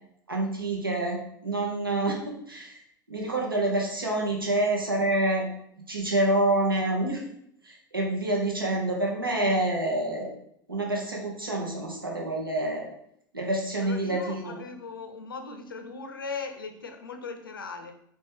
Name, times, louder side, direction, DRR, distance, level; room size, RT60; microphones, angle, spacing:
voice 1, 0.3-5.5 5.9-7.2 7.6-10.3 10.7-12.9 13.3-14.6, right 1 dB, 90° right, -1 dB, 0.9 m, -27 dB
voice 2, 13.8-17.9, left 4 dB, 80° left, 6 dB, 0.5 m, -38 dB
4.1 x 3.3 x 3.4 m, 0.72 s
figure-of-eight pair, 80°, 11 cm